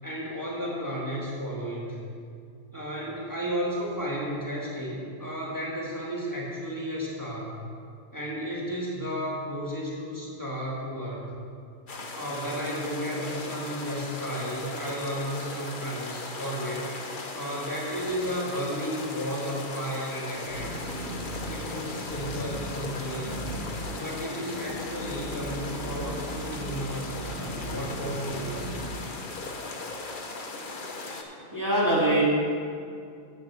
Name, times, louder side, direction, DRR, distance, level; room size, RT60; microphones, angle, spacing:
voice 1, 0.0-2.0 2.7-7.6 8.1-11.4 12.1-16.9 17.3-20.9 21.5-23.4 23.9-28.8, equal, 15° left, -4 dB, 1.8 m, -33 dB
sound 1, 11.9-31.2, left 3 dB, 45° left, 1.0 m, -38 dB
sound 2, 20.3-29.7, equal, 40° right, 1.8 m, -38 dB
voice 2, 30.6-32.2, right 1 dB, 15° right, -7 dB, 2.7 m, -26 dB
8.0 x 6.6 x 7.4 m, 2.3 s
omnidirectional pair, 1.3 m